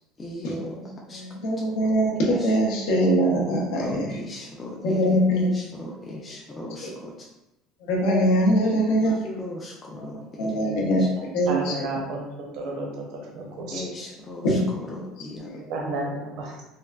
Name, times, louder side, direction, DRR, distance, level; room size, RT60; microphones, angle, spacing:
voice 1, 0.2-0.8 1.1-1.2 2.4-2.5 3.7-7.3 9.0-10.7 11.0-11.1 13.7-15.6, left 1 dB, 20° left, -2 dB, 0.3 m, -38 dB
voice 2, 1.1-4.1 4.8-5.5 6.8-6.9 7.9-9.2 10.0-11.1 11.3-11.8 14.4-14.6 14.9-15.0 15.4-15.6, equal, 80° left, -2 dB, 0.6 m, -22 dB
voice 3, 10.6-13.8 15.7-16.6, right 2 dB, 65° right, -1 dB, 0.6 m, -33 dB
3.4 x 2.2 x 2.2 m, 0.96 s
cardioid pair, 145°, 0 cm